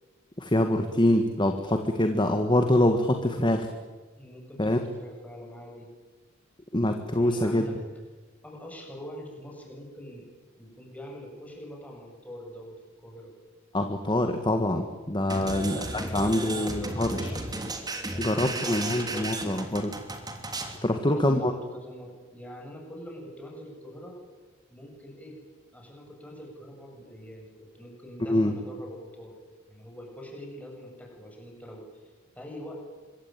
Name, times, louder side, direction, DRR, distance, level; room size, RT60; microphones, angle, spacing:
voice 1, 0.4-3.7 4.6-4.8 6.7-7.7 13.7-15.8 16.1-17.3 18.2-19.9 20.8-21.5 28.3-28.5, left 1 dB, 25° left, 6 dB, 1.8 m, -25 dB
voice 2, 4.2-5.9 7.1-7.7 8.4-10.3 10.6-12.7 13.0-13.3 15.3-17.4 17.9-18.7 19.1-19.4 20.8-24.1 24.7-25.4 25.7-29.4 29.7-32.8, equal, 5° left, 0 dB, 7.5 m, -44 dB
sound 1, 15.3-20.8, right 2 dB, 20° right, 3.2 m, -34 dB
26.0 x 23.0 x 9.1 m, 1.3 s
head